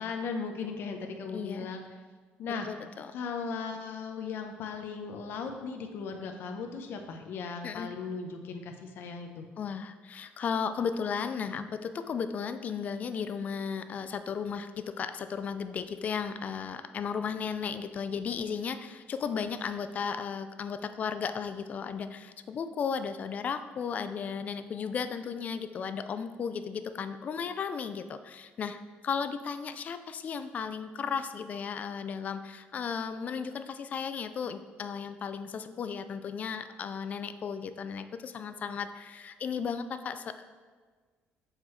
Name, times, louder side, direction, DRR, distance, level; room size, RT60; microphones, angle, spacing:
voice 1, 0.0-1.8 2.4-2.7 3.1-9.4, left 5 dB, 60° left, 4 dB, 0.7 m, -37 dB
voice 2, 1.3-1.7 2.6-3.1 7.6-7.9 9.6-28.8 29.0-40.5, left 6 dB, 40° left, 10 dB, 0.3 m, -35 dB
7.4 x 4.7 x 3.1 m, 1.5 s
cardioid pair, 140°, 4 cm